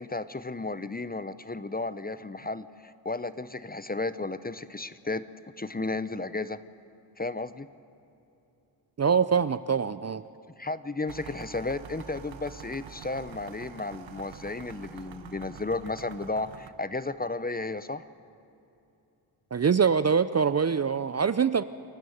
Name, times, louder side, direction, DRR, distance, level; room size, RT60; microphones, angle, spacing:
voice 1, 0.0-5.3 5.6-6.6 7.2-7.7 10.6-18.1, left 3 dB, 20° left, 14 dB, 0.8 m, -33 dB
voice 2, 9.0-10.2 19.5-21.6, right 6 dB, 35° right, 14 dB, 0.6 m, -24 dB
sound 1, 11.1-16.7, right 8 dB, 75° right, 1.1 m, -46 dB
27.5 x 12.0 x 7.9 m, 2.8 s
cardioid pair, 45°, 47 cm